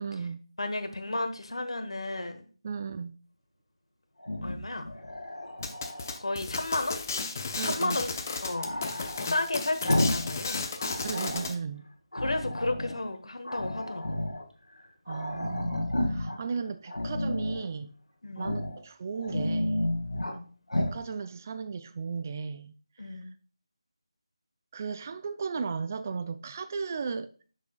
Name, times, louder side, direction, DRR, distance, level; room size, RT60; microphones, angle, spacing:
voice 1, 0.0-0.4 2.6-3.1 7.6-8.0 11.0-11.9 15.1-17.9 18.4-19.9 20.8-23.2 24.7-27.4, right 5 dB, 30° right, 0.4 m, -35 dB
voice 2, 0.6-2.5 4.4-4.9 6.2-7.0 7.4-8.1 8.4-10.6 12.1-14.2 16.3-16.4 18.2-18.6 20.1-20.5 23.0-23.3, left 2 dB, 70° left, 1.2 m, -33 dB
Growling, 4.2-6.2 8.6-10.3 10.6-11.5 12.1-13.0 13.4-14.4 14.8-14.9 15.1-16.4 16.9-17.7 18.4-18.8 19.1-20.4 20.7-21.0, left 1 dB, 85° left, 1.6 m, -32 dB
sound 1, 5.6-11.5, left 4 dB, 30° left, 0.7 m, -34 dB
9.5 x 6.2 x 2.3 m
figure-of-eight pair, 165°, 3 cm